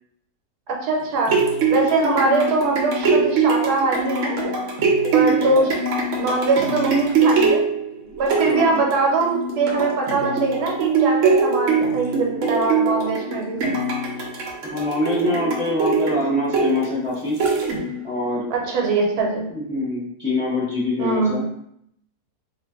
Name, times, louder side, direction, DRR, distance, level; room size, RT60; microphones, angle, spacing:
voice 1, 0.7-4.4 5.1-5.7 6.2-7.6 8.2-13.6 18.5-19.4 21.0-21.4, right 3 dB, 80° right, 0 dB, 1.2 m, -22 dB
sound 1, 1.0-18.1 18.6-18.7, right 4 dB, 65° right, 0.8 m, -22 dB
voice 2, 5.2-5.5 8.4-8.8 14.6-17.4 18.0-18.5 19.5-21.4, left 2 dB, 25° left, -8 dB, 0.7 m, -25 dB
2.5 x 2.5 x 3.4 m, 0.73 s
omnidirectional pair, 1.7 m